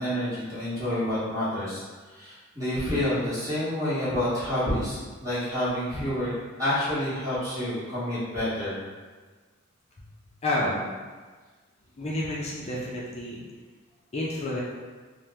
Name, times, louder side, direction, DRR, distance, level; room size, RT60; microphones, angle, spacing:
voice 1, 0.0-1.8 2.1-6.3 6.6-8.8, left 1 dB, 15° right, -12 dB, 1.0 m, -28 dB
voice 2, 10.4-10.8 12.0-13.4 14.1-14.6, left 1 dB, 30° left, -5 dB, 0.3 m, -29 dB
2.8 x 2.0 x 3.3 m, 1.4 s
head